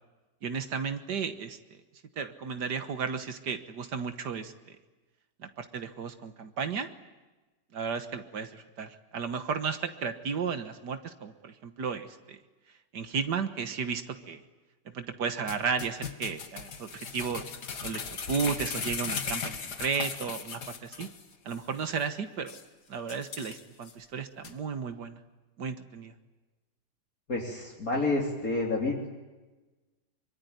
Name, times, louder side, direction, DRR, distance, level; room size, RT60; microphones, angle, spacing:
voice 1, 0.4-1.6 2.2-4.8 5.4-6.9 7.7-12.4 12.9-14.4 14.9-17.4 17.8-18.0 18.3-21.1 21.5-22.5 22.9-25.2 25.6-26.1, right 6 dB, 75° right, 9 dB, 1.9 m, -34 dB
sound 1, 15.5-21.2 21.5-21.6 22.0-22.1 22.5-22.6 23.1-23.9 24.4-24.5, left 6 dB, 70° left, 2.3 m, -37 dB
voice 2, 27.3-29.1, left 2 dB, 55° left, -2 dB, 3.7 m, -29 dB
24.5 x 23.5 x 9.6 m, 1.2 s
omnidirectional pair, 1.8 m